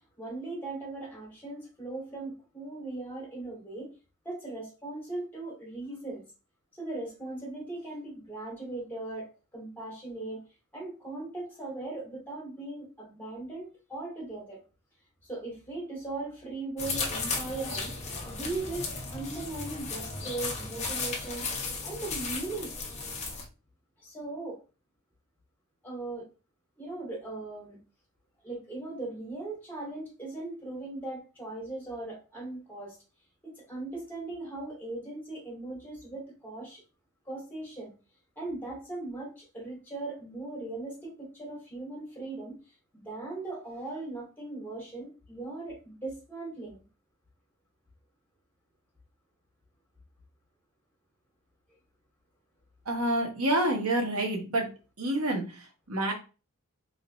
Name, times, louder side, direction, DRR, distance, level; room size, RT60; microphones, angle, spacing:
voice 1, 0.2-3.9 4.2-6.2 6.8-9.3 9.5-10.4 10.7-14.6 15.2-17.9 18.2-21.5 21.8-22.7 24.0-24.6 25.8-26.2 26.8-27.8 28.4-33.0 33.4-36.8 37.3-37.9 38.4-42.6 42.9-46.8, right 2 dB, 10° left, 2.4 m, -39 dB
sound 1, 16.8-23.4, left 4 dB, 30° left, 1.0 m, -35 dB
voice 2, 52.8-54.7 55.0-56.1, right 1 dB, 75° right, 1.5 m, -28 dB
4.3 x 3.9 x 2.7 m
head